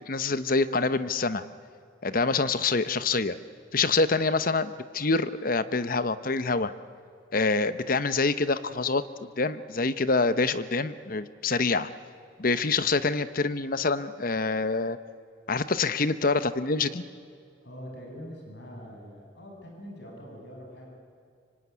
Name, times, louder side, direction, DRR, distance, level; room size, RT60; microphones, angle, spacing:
voice 1, 0.1-1.4 2.0-3.4 3.7-6.7 7.3-9.0 9.4-11.9 12.4-15.0 15.5-17.0, left 3 dB, 50° left, 13 dB, 0.9 m, -26 dB
voice 2, 17.6-20.9, equal, 65° left, 0 dB, 7.4 m, -43 dB
25.0 x 24.5 x 9.6 m, 2.3 s
head